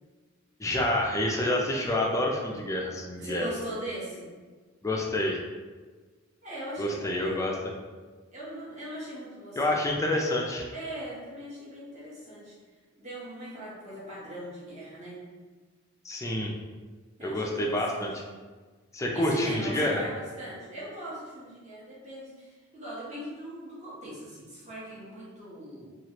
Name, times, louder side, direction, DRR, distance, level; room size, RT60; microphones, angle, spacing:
voice 1, 0.6-3.5 4.8-5.4 6.8-7.5 9.6-10.7 16.0-16.5 17.2-18.1 18.9-20.0, left 1 dB, 15° left, -1 dB, 0.4 m, -28 dB
voice 2, 3.2-4.3 6.4-7.4 8.3-9.9 10.7-12.5 13.0-15.2 17.2-18.2 19.1-25.9, right 1 dB, 35° right, -8 dB, 1.0 m, -40 dB
2.9 x 2.4 x 2.9 m, 1.4 s
head